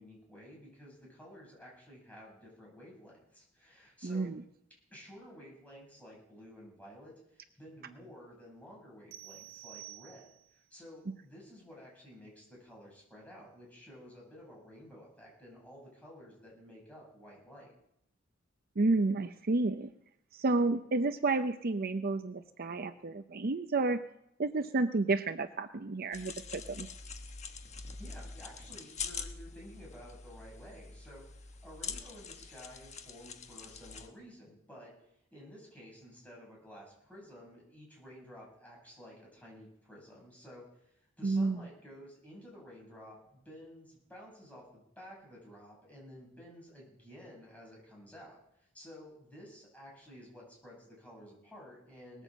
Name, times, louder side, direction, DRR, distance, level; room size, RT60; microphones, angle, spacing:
voice 1, 0.0-4.3 4.9-17.8 27.8-31.2 31.6-34.9 35.3-40.7 41.2-48.4 48.7-52.2, equal, 5° left, -4 dB, 7.8 m, -52 dB
voice 2, 4.0-4.4 18.8-19.9 20.3-24.0 24.4-26.9 41.2-41.6, right 3 dB, 50° right, 9 dB, 0.6 m, -31 dB
sound 1, 9.1-10.6, right 15 dB, 75° right, 1.8 m, -50 dB
sound 2, 26.1-34.1, left 5 dB, 35° left, 1.3 m, -44 dB
20.0 x 8.1 x 7.5 m, 0.77 s
head